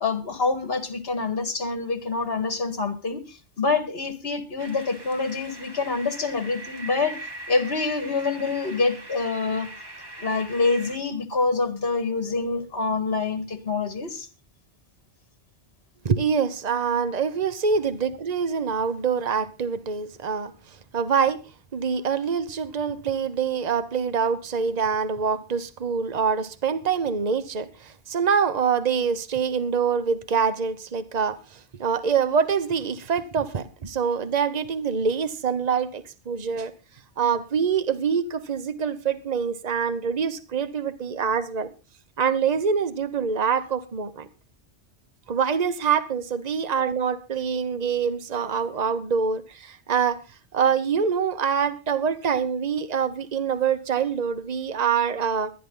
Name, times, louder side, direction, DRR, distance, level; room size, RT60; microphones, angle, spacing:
voice 1, 0.0-7.2 7.5-9.7 10.2-14.3, left 4 dB, 60° left, 2.0 m, -26 dB
sound 1, 4.6-11.0, right 2 dB, 20° right, 1.4 m, -41 dB
voice 2, 16.0-20.5 20.9-21.4 21.7-36.7 37.2-41.7 42.2-44.3 45.3-50.2 50.5-55.5, right 6 dB, 40° right, 1.1 m, -25 dB
18.5 x 11.0 x 3.9 m
omnidirectional pair, 1.2 m